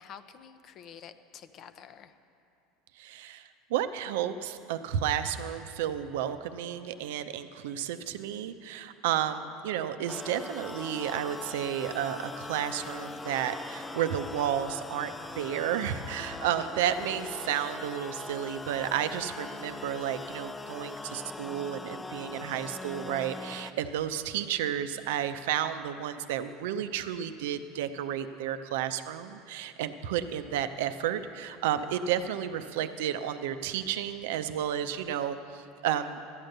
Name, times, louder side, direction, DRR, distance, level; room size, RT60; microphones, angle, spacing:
voice 1, 0.0-2.1, left 8 dB, 45° left, 11 dB, 0.7 m, -49 dB
voice 2, 3.0-36.2, right 10 dB, 80° right, 10 dB, 0.6 m, -32 dB
sound 1, 10.1-23.7, left 3 dB, 15° left, 0.4 m, -41 dB
13.0 x 9.1 x 6.6 m, 2.7 s
hypercardioid pair, 95°, 0 cm